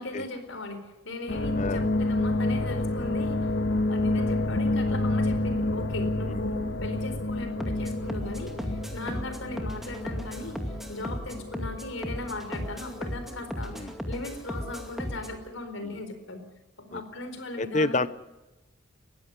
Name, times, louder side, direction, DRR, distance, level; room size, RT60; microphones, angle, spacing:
voice 1, 0.0-3.5 3.9-16.4 16.8-18.1, left 2 dB, 90° left, 8 dB, 4.4 m, -38 dB
sound 1, 1.3-13.4 13.7-14.1, left 2 dB, 65° left, 1.7 m, -29 dB
sound 2, 7.6-15.4, equal, ahead, 2.3 m, -36 dB
voice 2, 17.6-18.1, left 2 dB, 35° left, 15 dB, 0.8 m, -29 dB
21.0 x 15.5 x 9.8 m, 1.0 s
head